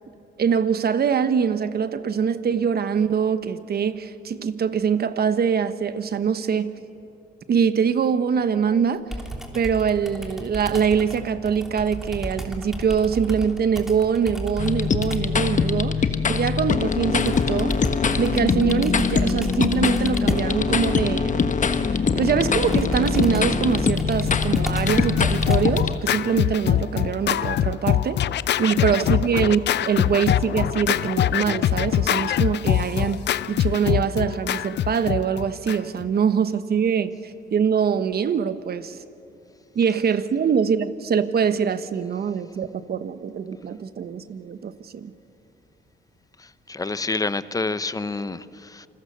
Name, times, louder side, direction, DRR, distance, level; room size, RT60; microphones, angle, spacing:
voice 1, 0.4-6.7 7.5-9.0 9.5-17.8 18.2-21.5 21.9-28.2 28.6-33.2 33.5-37.1 37.5-39.0 39.7-45.1, right 7 dB, 50° right, 1.2 m, -23 dB
Computer keyboard, 9.1-15.4 17.2-25.9, equal, ahead, 3.0 m, -33 dB
sound 1, 14.6-25.9, left 5 dB, 40° left, 1.2 m, -23 dB
Scratching (performance technique), 24.0-36.1, left 11 dB, 60° left, 0.6 m, -24 dB
voice 2, 46.7-48.9, left 3 dB, 20° left, 0.9 m, -28 dB
28.5 x 21.5 x 6.7 m
cardioid pair, 90°, 20 cm